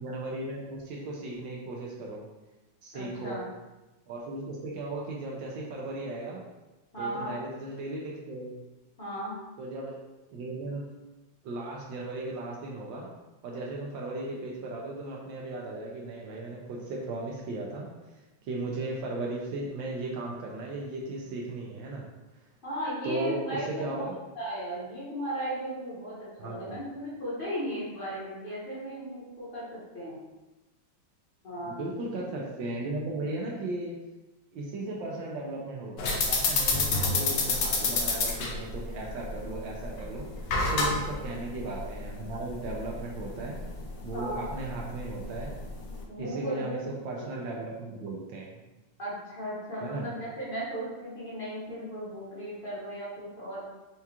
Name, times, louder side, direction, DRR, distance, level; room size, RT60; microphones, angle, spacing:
voice 1, 0.0-2.2 2.8-3.4 4.1-6.4 7.0-8.5 9.6-10.0 10.3-10.9 11.4-13.1 13.4-17.9 18.1-22.0 23.0-24.1 26.4-26.8 31.6-33.9 34.5-43.6 44.0-45.5 46.2-48.6 49.8-50.1, right 2 dB, 75° right, -2 dB, 1.3 m, -36 dB
voice 2, 2.9-3.5 6.9-7.3 9.0-9.3 22.6-24.1 24.3-30.2 31.4-31.9 40.8-41.1 44.1-44.4 46.1-46.8 47.2-47.3 49.0-53.7, right 1 dB, 35° left, -9 dB, 1.0 m, -36 dB
sound 1, 36.0-46.0, left 3 dB, 75° left, 0.8 m, -30 dB
4.6 x 2.3 x 2.8 m, 1.1 s
omnidirectional pair, 2.2 m